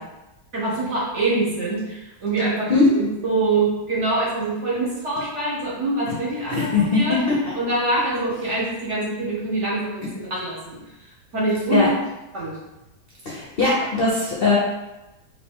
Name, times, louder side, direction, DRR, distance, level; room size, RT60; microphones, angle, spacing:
voice 1, 0.5-2.7 3.0-7.2 7.6-10.8 11.3-11.9 12.3-12.5, right 2 dB, 45° right, -6 dB, 1.2 m, -24 dB
voice 2, 2.7-3.0 6.6-7.5 11.7-11.9 13.2-14.6, left 3 dB, 55° left, -5 dB, 0.6 m, -20 dB
4.4 x 2.9 x 3.6 m, 0.99 s
omnidirectional pair, 2.0 m